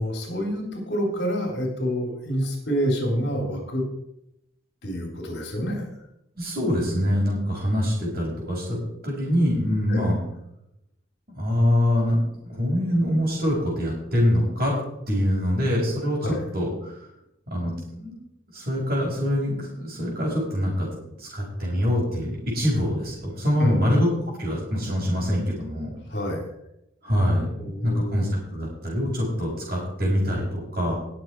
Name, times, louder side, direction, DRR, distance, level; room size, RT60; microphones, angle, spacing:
voice 1, 0.0-3.8 4.8-5.9 9.9-10.1 16.2-16.4 23.6-24.0 26.1-26.5 27.6-28.3, equal, 55° left, 1 dB, 3.5 m, -27 dB
voice 2, 6.4-10.2 11.3-14.7 15.1-16.3 16.5-17.0 17.5-18.2 18.5-20.9 21.2-25.9 27.0-30.9, equal, 50° right, -8 dB, 4.9 m, -24 dB
19.5 x 7.1 x 4.6 m, 0.82 s
head